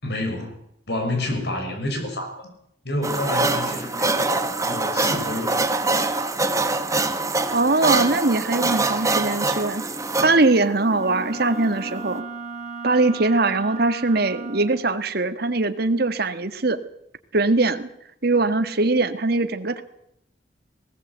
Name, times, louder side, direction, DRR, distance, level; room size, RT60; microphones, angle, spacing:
voice 1, 0.0-0.5 0.9-2.5 2.8-5.6, left 1 dB, 65° left, 5 dB, 5.7 m, -29 dB
sound 1, 3.0-12.2, right 3 dB, 20° right, 1.4 m, -25 dB
voice 2, 7.5-9.9 10.2-12.2 12.8-16.8 17.3-17.9 18.2-19.8, right 2 dB, 60° right, 9 dB, 1.7 m, -21 dB
Wind instrument woodwind instrument, 10.9-14.9, right 4 dB, 40° right, 2.6 m, -35 dB
19.5 x 17.5 x 8.1 m, 0.74 s
head